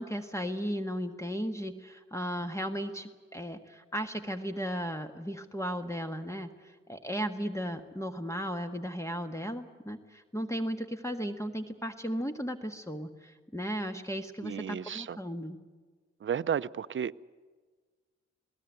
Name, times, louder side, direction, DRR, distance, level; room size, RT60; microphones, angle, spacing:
voice 1, 0.0-15.6, equal, 10° left, 1.6 m, -35 dB
voice 2, 14.4-15.2 16.2-17.1, right 8 dB, 45° right, 0.6 m, -32 dB
20.5 x 18.0 x 9.3 m
supercardioid pair, 40°, 29 cm